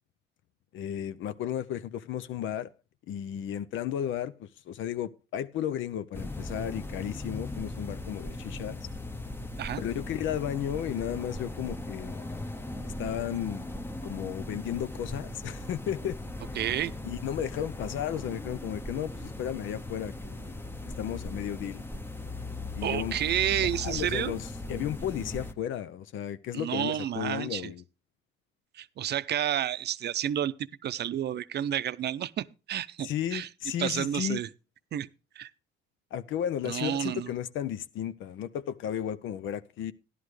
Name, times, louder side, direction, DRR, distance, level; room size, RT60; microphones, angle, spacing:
voice 1, 0.7-2.7 3.1-8.8 9.8-12.2 12.8-13.7 14.0-16.2 17.0-20.5 21.0-21.8 22.8-23.2 23.6-27.8 33.0-34.4 36.1-39.9, left 10 dB, 80° left, 0.6 m, -34 dB
sound 1, 6.1-25.5, left 2 dB, 10° left, 0.8 m, -38 dB
voice 2, 16.6-16.9 22.8-24.3 26.5-27.7 28.7-30.5 30.8-33.5 33.8-34.5 34.9-35.1 35.4-35.5 36.7-37.3, right 10 dB, 55° right, 0.5 m, -30 dB
13.5 x 11.0 x 3.2 m
cardioid pair, 90°, 20 cm